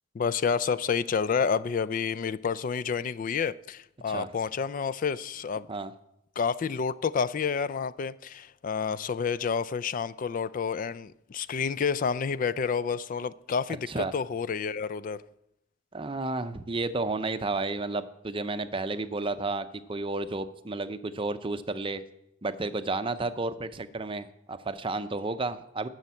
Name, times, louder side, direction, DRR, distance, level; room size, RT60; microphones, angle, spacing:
voice 1, 0.1-5.7 6.4-15.2, left 6 dB, 40° left, 0.3 m, -29 dB
voice 2, 15.9-22.0 22.4-25.9, right 3 dB, 25° right, 0.6 m, -32 dB
11.5 x 6.5 x 8.2 m
head